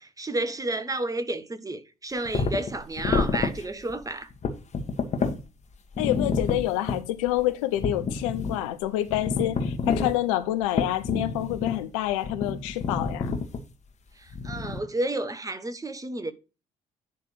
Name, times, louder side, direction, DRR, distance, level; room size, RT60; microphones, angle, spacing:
voice 1, 0.0-4.3 14.4-16.3, right 2 dB, 20° right, 1.0 m, -31 dB
sound 1, 2.2-3.6 3.9-4.0 4.3-5.4 5.9-7.0 7.3-7.4 7.8-8.6 8.8-10.1 10.8-11.8 12.2-13.6 14.3-14.8, left 4 dB, 40° left, 1.4 m, -28 dB
voice 2, 6.0-13.3, left 14 dB, 70° left, 0.7 m, -27 dB
10.5 x 3.4 x 6.4 m
figure-of-eight pair, 45°, 18 cm